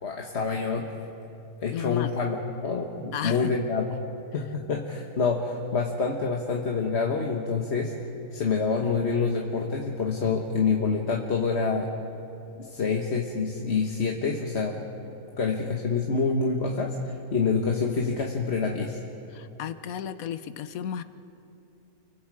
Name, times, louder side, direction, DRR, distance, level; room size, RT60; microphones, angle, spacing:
voice 1, 0.0-0.9 1.6-3.8 4.3-7.9 8.3-11.9 12.6-14.8 15.4-19.0, left 4 dB, 45° left, 0 dB, 1.5 m, -27 dB
voice 2, 1.7-2.2 3.1-3.5 19.3-21.0, left 9 dB, 65° left, 12 dB, 1.1 m, -33 dB
29.5 x 23.5 x 4.9 m, 2.8 s
omnidirectional pair, 1.8 m